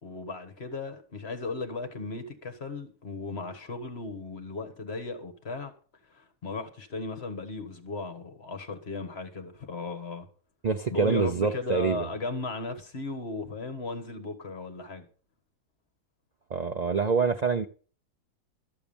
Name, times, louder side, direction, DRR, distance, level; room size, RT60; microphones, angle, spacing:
voice 1, 0.0-5.7 6.1-10.3 10.9-15.0, left 3 dB, 45° left, 1.6 m, -36 dB
voice 2, 10.6-12.1 16.5-17.7, right 5 dB, 90° right, 0.3 m, -26 dB
12.5 x 7.1 x 7.0 m
omnidirectional pair, 1.6 m